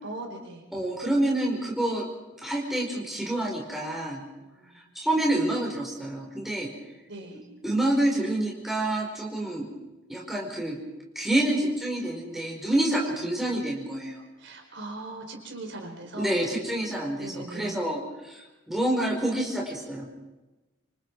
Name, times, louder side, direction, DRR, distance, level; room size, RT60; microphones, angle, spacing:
voice 1, 0.0-0.6 4.4-4.7 7.1-7.4 14.4-16.4 17.2-17.8, right 2 dB, 55° right, 2 dB, 4.5 m, -39 dB
voice 2, 0.7-2.1 2.4-4.2 4.7-6.7 7.6-9.7 10.1-10.8 11.1-14.2 16.1-20.0, right 1 dB, ahead, -2 dB, 4.6 m, -28 dB
28.0 x 26.0 x 4.8 m, 1.1 s
head